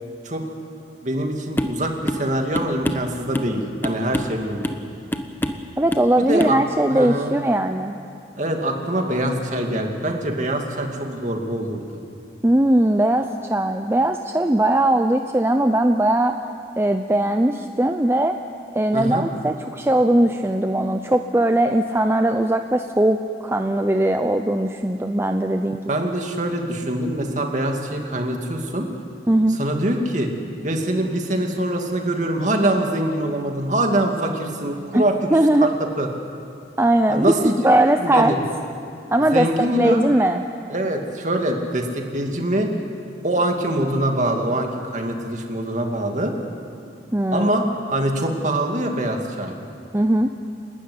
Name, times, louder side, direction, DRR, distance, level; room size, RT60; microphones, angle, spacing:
voice 1, 1.0-4.8 6.2-6.6 6.9-7.3 8.4-11.8 18.9-19.3 25.9-28.9 29.5-30.3 30.6-35.3 35.6-36.1 37.1-37.5 38.0-38.4 39.3-40.0 40.7-42.7 43.2-46.3 47.3-47.6 47.9-49.5, right 1 dB, 45° right, 3 dB, 2.4 m, -24 dB
sound 1, 1.6-1.8 2.1-2.3 2.6-3.5 3.8-4.4 4.6-4.9 5.1-5.7 5.9-6.1 6.4-6.6, equal, 10° left, 1.0 m, -26 dB
voice 2, 5.8-7.9 12.4-16.4 16.8-18.4 18.7-23.2 23.4-25.9 29.3-29.6 34.9-35.0 35.3-35.7 36.8-38.4 39.1-40.4 47.1-47.5 49.9-50.3, right 1 dB, 15° right, 6 dB, 0.6 m, -19 dB
28.5 x 12.5 x 9.7 m, 2.5 s
head